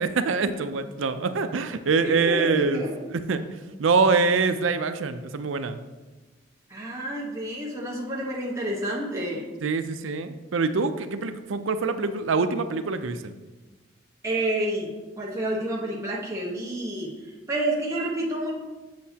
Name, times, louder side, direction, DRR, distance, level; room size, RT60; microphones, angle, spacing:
voice 1, 0.0-2.8 3.3-5.8 9.6-13.3, right 4 dB, 85° right, 10 dB, 0.5 m, -25 dB
voice 2, 2.0-3.1 6.7-9.5 14.2-14.9 15.2-18.5, right 1 dB, 15° right, -4 dB, 1.2 m, -29 dB
7.6 x 7.2 x 2.8 m, 1.2 s
head